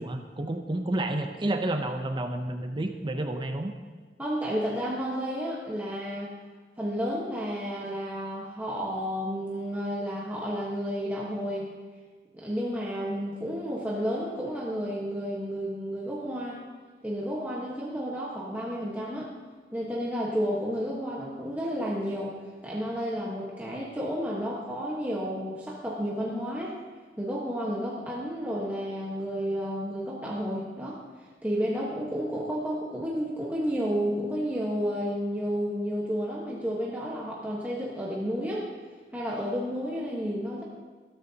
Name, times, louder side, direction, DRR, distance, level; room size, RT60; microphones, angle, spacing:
voice 1, 0.0-3.7, right 1 dB, 25° right, 6 dB, 0.6 m, -30 dB
voice 2, 4.2-6.3 6.8-11.7 12.3-16.6 17.0-19.3 19.7-22.4 22.6-26.8 27.2-31.0 31.4-38.7 39.1-40.6, equal, 10° right, -5 dB, 1.3 m, -31 dB
13.5 x 13.0 x 2.9 m, 1.4 s
head